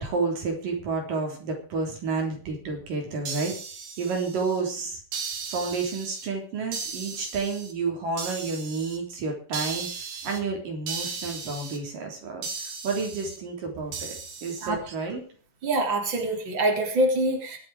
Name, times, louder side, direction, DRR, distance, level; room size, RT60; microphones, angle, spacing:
voice 1, 0.0-3.5 4.0-5.0 5.5-9.9 10.2-12.5 12.8-14.2 14.4-15.2, right 4 dB, 80° right, 1 dB, 5.3 m, -30 dB
sound 1, 3.2-4.6 5.1-6.3 6.7-7.7 8.2-9.0 9.5-10.4 10.9-11.8 12.4-13.4 13.9-14.7, right 5 dB, 65° right, 3.7 m, -36 dB
voice 2, 15.6-17.6, right 1 dB, 35° right, 1 dB, 4.1 m, -25 dB
23.5 x 8.0 x 4.9 m, 0.43 s
omnidirectional pair, 3.8 m